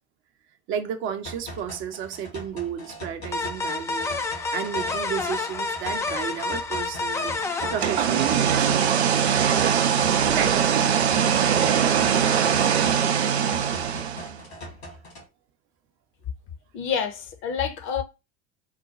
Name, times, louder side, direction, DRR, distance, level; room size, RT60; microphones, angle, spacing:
voice 1, 0.7-7.4 7.7-9.2 10.3-10.6, right 8 dB, 40° right, 0.6 m, -32 dB
sound 1, 1.2-15.3, left 1 dB, 70° left, 2.1 m, -41 dB
sound 2, 3.3-8.7, left 3 dB, 10° left, 0.3 m, -29 dB
sound 3, 7.6-14.4, right 8 dB, 75° right, 0.5 m, -22 dB
voice 2, 16.7-18.0, left 7 dB, 40° left, 0.8 m, -28 dB
4.0 x 2.2 x 3.7 m
figure-of-eight pair, 70°, 32 cm